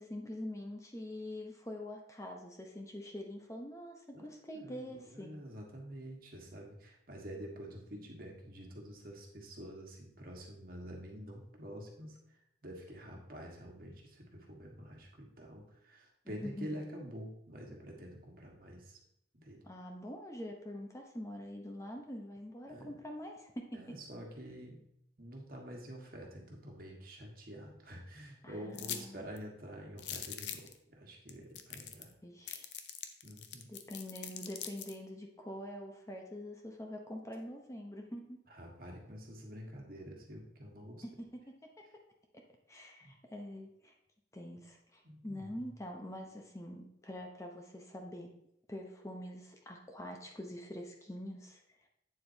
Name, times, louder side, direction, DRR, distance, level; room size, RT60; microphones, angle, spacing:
voice 1, 0.0-5.3 16.2-16.8 19.6-23.8 28.4-29.3 32.2-32.7 33.7-38.4 41.0-41.5 42.3-42.4 42.7-43.9 44.3-48.3 48.7-51.9, left 1 dB, 15° left, 2 dB, 0.8 m, -45 dB
voice 2, 4.5-12.2 12.6-19.0 19.3-19.6 22.7-23.0 23.7-24.8 25.2-32.1 33.2-33.7 38.5-41.0 43.0-43.1 45.0-45.7, equal, 50° right, 0 dB, 1.5 m, -48 dB
sound 1, 28.7-29.0 29.4-29.5 30.0-30.7 31.3-31.4 31.5-32.1 32.5-34.9, left 10 dB, 70° left, 0.7 m, -42 dB
8.7 x 7.4 x 2.8 m, 0.77 s
head